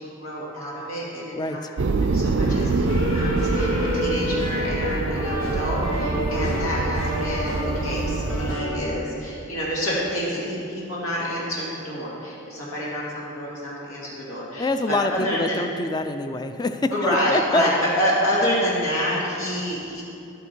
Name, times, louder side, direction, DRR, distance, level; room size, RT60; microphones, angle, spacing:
voice 1, 0.0-1.7 2.0-15.6 16.9-20.0, equal, 90° left, -5 dB, 2.3 m, -28 dB
voice 2, 1.3-1.7 6.1-6.6 14.6-17.7, left 2 dB, 20° left, 9 dB, 0.3 m, -26 dB
sound 1, 1.8-8.5, right 3 dB, 60° right, 0.4 m, -25 dB
sound 2, 2.5-8.8, left 1 dB, 70° left, 2.0 m, -29 dB
11.0 x 8.6 x 4.5 m, 2.6 s
head